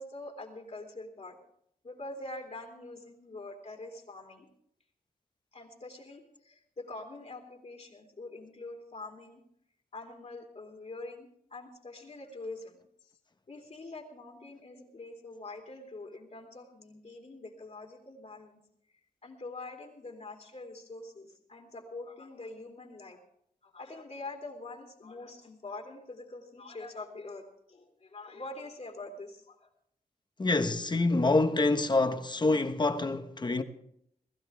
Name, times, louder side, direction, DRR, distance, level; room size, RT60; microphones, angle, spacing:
voice 1, 0.0-1.4 1.8-4.5 5.5-9.4 9.9-12.8 13.5-18.6 19.2-23.2 23.6-29.7, left 2 dB, 50° left, 3.0 m, -44 dB
voice 2, 30.4-33.6, left 2 dB, 30° left, 1.1 m, -26 dB
21.0 x 15.0 x 3.5 m
wide cardioid pair, 140°, 15 cm